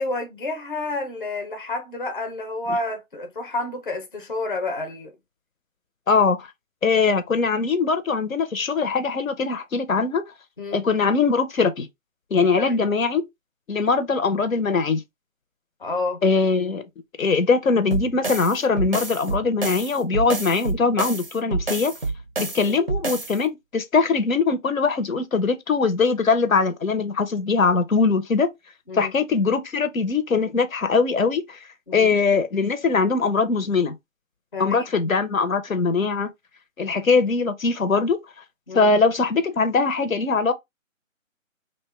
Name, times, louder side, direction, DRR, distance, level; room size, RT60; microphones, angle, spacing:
voice 1, 0.0-5.1 10.6-10.9 12.6-12.7 15.8-16.2 22.6-22.8 28.9-29.1 31.9-32.1 34.5-34.9 38.7-38.9, left 2 dB, 40° left, 0.6 m, -29 dB
voice 2, 6.1-6.5 6.8-10.2 10.7-11.9 12.3-13.2 13.7-15.0 16.2-16.8 17.2-21.9 22.4-28.5 28.9-31.6 31.9-33.9 34.6-36.3 36.8-38.2 38.7-40.5, left 4 dB, 75° left, 0.7 m, -21 dB
sound 1, 17.9-23.4, right 3 dB, 45° right, 0.4 m, -28 dB
2.7 x 2.2 x 3.0 m
figure-of-eight pair, 160°, 41 cm